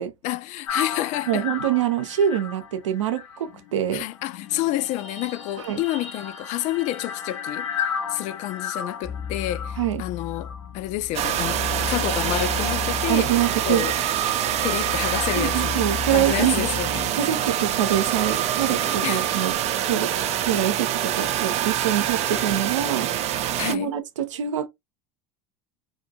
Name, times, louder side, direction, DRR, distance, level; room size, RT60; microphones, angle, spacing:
voice 1, 0.2-1.5 3.9-11.6 11.9-13.3 13.6-14.0 14.6-15.8 16.1-17.1 19.0-19.2 23.6-23.9, left 15 dB, 50° left, 0.4 m, -29 dB
sound 1, 0.7-17.2 17.8-19.5, left 7 dB, 85° left, 0.7 m, -36 dB
voice 2, 1.3-4.0 5.6-5.8 9.8-10.0 13.1-13.9 15.4-16.7 17.2-19.5 19.8-20.1 20.4-23.1 23.7-24.7, right 10 dB, 85° right, 0.6 m, -25 dB
sound 2, 9.0-17.1, left 7 dB, 25° left, 0.9 m, -34 dB
sound 3, 11.1-23.7, right 11 dB, 45° right, 0.5 m, -25 dB
2.5 x 2.3 x 2.8 m
hypercardioid pair, 85°, 15 cm